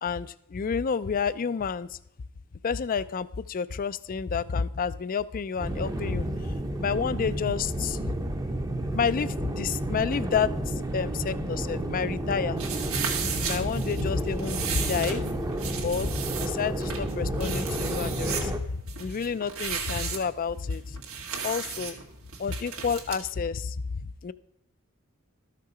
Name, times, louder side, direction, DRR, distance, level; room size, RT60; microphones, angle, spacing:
voice 1, 0.0-2.0 2.6-6.5 6.8-8.0 8.9-12.6 13.4-15.2 15.8-21.0 21.4-21.9 22.4-23.8 24.2-24.3, left 6 dB, 40° left, 17 dB, 0.4 m, -30 dB
sound 1, 5.6-18.6, right 1 dB, 15° right, 0.7 m, -31 dB
sound 2, 12.6-23.2, right 7 dB, 85° right, 2.1 m, -35 dB
13.0 x 6.7 x 4.9 m, 0.79 s
head